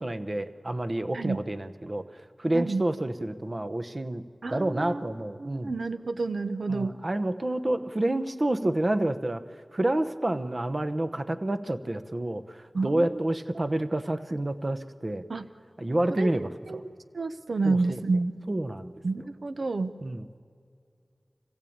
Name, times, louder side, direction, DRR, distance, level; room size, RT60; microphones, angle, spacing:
voice 1, 0.0-4.2 4.5-5.7 6.7-9.4 9.7-15.2 15.8-16.8 17.6-18.0 18.5-19.0 20.0-20.4, right 1 dB, 40° right, 9 dB, 0.9 m, -29 dB
voice 2, 2.5-2.8 4.4-5.0 5.4-7.0 12.7-13.2 15.3-15.5 16.1-16.3 16.7-16.8 17.1-18.3 19.0-20.0, right 3 dB, 80° right, 11 dB, 0.8 m, -29 dB
25.5 x 15.5 x 8.8 m, 2.3 s
wide cardioid pair, 60°, 0 cm